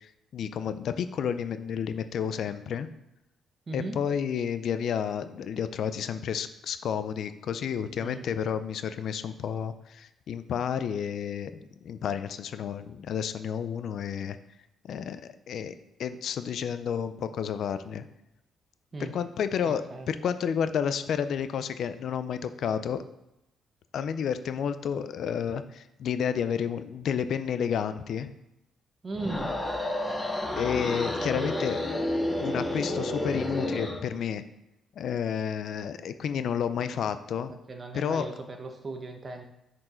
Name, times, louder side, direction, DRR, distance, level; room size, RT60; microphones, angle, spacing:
voice 1, 0.0-2.9 3.7-11.5 11.8-14.4 14.8-15.7 16.0-18.1 19.1-19.8 20.1-23.0 23.9-28.3 30.6-31.8 32.4-34.4 35.0-37.5 37.9-38.3, left 8 dB, 65° left, 11 dB, 0.4 m, -31 dB
voice 2, 3.7-4.0 8.0-8.2 18.9-19.1 19.6-20.1 29.0-29.5 31.0-31.7 37.7-39.4, right 2 dB, 35° right, 5 dB, 1.1 m, -38 dB
sound 1, 29.1-34.0, left 1 dB, 15° left, 1.7 m, -30 dB
6.4 x 4.6 x 4.4 m, 0.89 s
cardioid pair, 90°, 0 cm